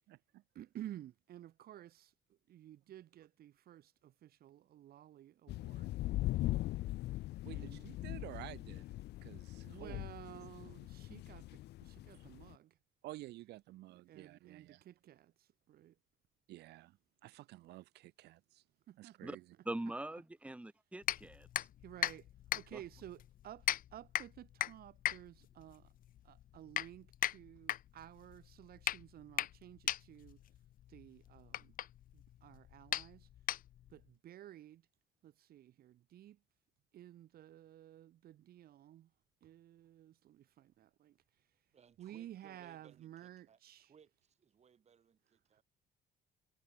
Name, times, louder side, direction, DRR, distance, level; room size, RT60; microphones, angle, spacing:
voice 1, 0.5-5.9 7.5-7.8 9.6-12.8 13.9-15.9 18.9-19.2 21.8-22.3 22.5-25.9 26.2-30.4 30.9-31.7 32.1-33.3 33.9-34.8 35.2-36.4 36.9-39.1 39.4-41.5 42.0-43.9 45.5-45.6, right 12 dB, 65° right, 3.5 m, -54 dB
sound 1, 5.5-12.5, left 16 dB, 80° left, 2.4 m, -40 dB
voice 2, 7.4-8.9 9.2-10.1 13.0-14.8 16.5-17.0 17.2-18.6 19.0-19.4, right 17 dB, 80° right, 4.4 m, -51 dB
voice 3, 19.6-21.7 22.7-22.8, right 1 dB, 5° right, 3.4 m, -43 dB
sound 2, 21.0-34.0, left 12 dB, 55° left, 0.8 m, -40 dB
voice 4, 41.7-43.6 43.9-45.6, right 7 dB, 40° right, 7.6 m, -65 dB
cardioid pair, 110°, 17 cm